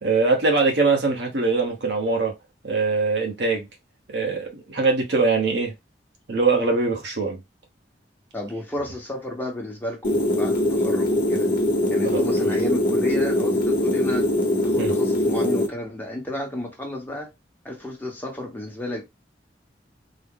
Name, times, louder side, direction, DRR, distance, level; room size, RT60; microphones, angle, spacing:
voice 1, 0.0-2.3 2.6-3.7 4.1-5.7 6.3-7.4 12.0-12.2 14.7-14.9, right 3 dB, 75° right, 0.9 m, -22 dB
voice 2, 8.3-11.5 11.9-14.3 14.6-17.3 17.6-19.0, left 1 dB, 10° left, 0.9 m, -32 dB
sound 1, 10.0-15.7, left 1 dB, 50° left, 0.9 m, -22 dB
3.7 x 2.0 x 3.6 m
head